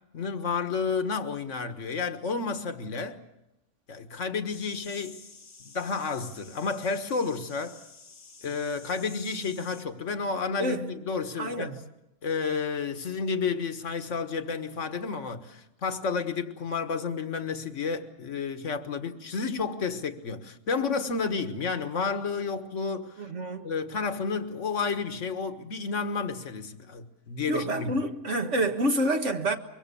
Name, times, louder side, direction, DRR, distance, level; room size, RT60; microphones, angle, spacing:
voice 1, 0.1-3.2 3.9-5.2 5.7-7.8 8.4-11.8 12.2-23.3 23.6-28.0, left 5 dB, 55° left, 1.8 m, -31 dB
sound 1, 4.5-9.9, left 4 dB, 80° left, 2.2 m, -50 dB
voice 2, 11.4-11.8 23.2-23.7 27.5-29.6, right 1 dB, 50° right, 1.9 m, -28 dB
24.5 x 23.5 x 7.0 m
omnidirectional pair, 1.6 m